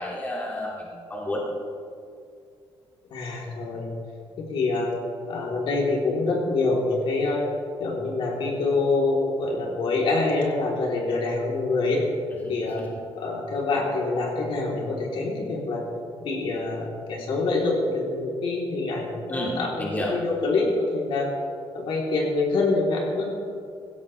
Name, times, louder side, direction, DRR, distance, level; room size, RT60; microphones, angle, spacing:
voice 1, 0.0-1.4 19.3-20.1, left 1 dB, 20° left, -4 dB, 2.4 m, -31 dB
voice 2, 3.1-3.9 4.5-4.9 5.3-7.4 7.8-12.0 12.5-12.8 13.1-15.8 16.2-21.3 21.7-23.3, left 3 dB, 65° left, -2 dB, 3.3 m, -25 dB
16.5 x 16.0 x 3.3 m, 2.3 s
cardioid pair, 155°, 9 cm